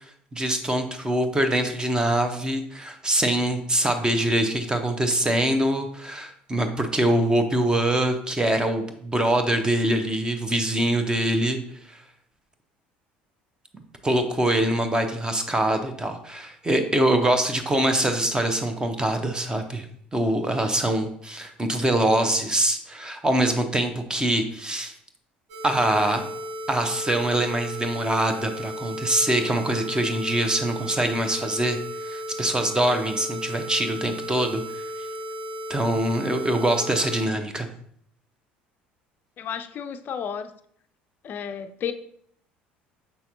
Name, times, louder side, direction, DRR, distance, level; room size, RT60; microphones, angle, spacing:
voice 1, 0.0-11.6 11.9-12.0 14.0-19.9 20.1-24.9 25.6-26.2 26.7-34.8 35.7-37.7, right 1 dB, 15° right, 7 dB, 0.8 m, -24 dB
sound 1, 25.5-37.3, equal, 60° right, 1.5 m, -35 dB
voice 2, 39.4-40.5 41.2-41.9, left 8 dB, 40° left, 8 dB, 0.4 m, -32 dB
6.7 x 5.7 x 2.7 m, 0.65 s
figure-of-eight pair, 60°, 5 cm